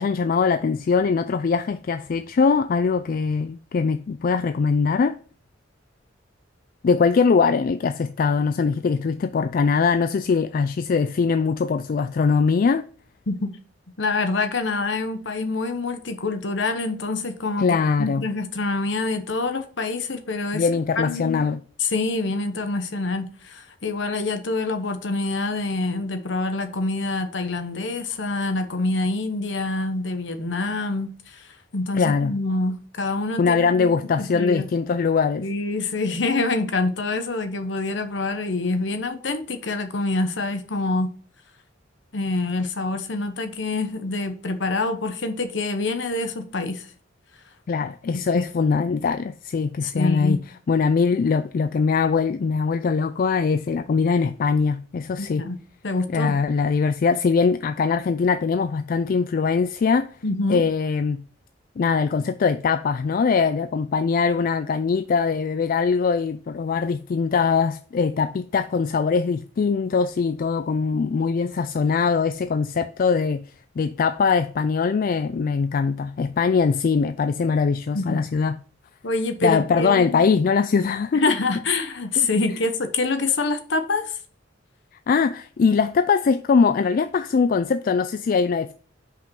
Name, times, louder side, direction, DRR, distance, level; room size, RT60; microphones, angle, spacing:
voice 1, 0.0-5.2 6.8-12.8 17.6-18.2 20.5-21.6 31.9-32.3 33.4-35.5 47.7-50.4 50.7-55.4 56.1-60.1 60.5-61.2 61.8-73.4 73.8-78.6 79.4-81.2 82.2-82.3 85.1-88.7, left 5 dB, 50° left, 0.3 m, -22 dB
voice 2, 14.0-20.7 21.0-21.5 21.8-31.5 31.7-33.9 34.2-34.6 35.4-41.1 42.1-46.9 48.1-48.4 49.8-50.4 55.2-55.6 55.8-56.4 60.2-60.6 77.9-78.2 79.0-80.3 81.1-84.1, left 3 dB, 65° left, 1.0 m, -26 dB
5.6 x 5.2 x 5.4 m
head